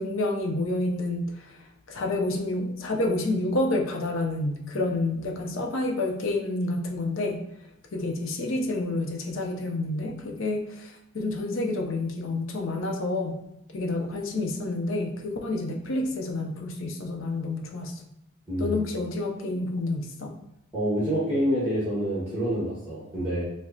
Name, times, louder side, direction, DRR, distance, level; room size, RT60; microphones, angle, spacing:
voice 1, 0.0-7.4 7.9-13.4 13.7-18.0 18.6-20.3, left 2 dB, 70° left, 2 dB, 0.5 m, -29 dB
voice 2, 18.5-18.8 20.7-23.4, equal, 10° right, -8 dB, 1.0 m, -27 dB
4.7 x 2.0 x 2.6 m, 0.82 s
head